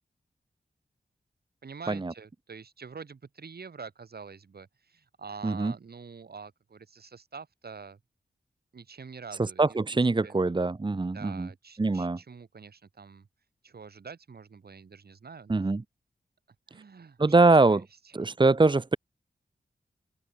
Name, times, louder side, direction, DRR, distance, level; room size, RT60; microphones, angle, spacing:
voice 1, 1.6-8.0 8.7-10.0 10.2-10.3 11.1-13.3 13.6-15.6 16.7-17.8, right 5 dB, 75° right, 4.9 m, -46 dB
voice 2, 9.4-11.5 11.8-12.2 15.5-15.8 17.2-17.8 18.1-19.0, right 3 dB, 30° right, 1.1 m, -23 dB
open air
wide cardioid pair, 105°, 17 cm